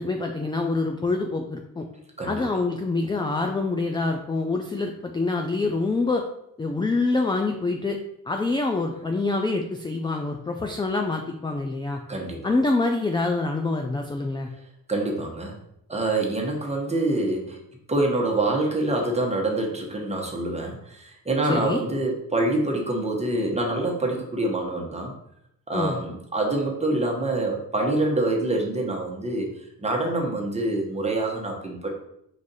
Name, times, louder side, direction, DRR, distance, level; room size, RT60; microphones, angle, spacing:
voice 1, 0.0-1.8 2.3-6.2 6.6-8.0 8.3-12.0 12.4-14.5 21.4-21.8 25.7-26.0, left 3 dB, 15° left, 4 dB, 0.3 m, -26 dB
voice 2, 2.2-2.6 12.1-12.5 14.9-15.6 15.9-17.6 17.9-25.1 25.7-29.5 29.8-32.0, right 2 dB, 20° right, 0 dB, 1.0 m, -26 dB
4.9 x 2.6 x 4.0 m, 0.77 s
cardioid pair, 95°, 37 cm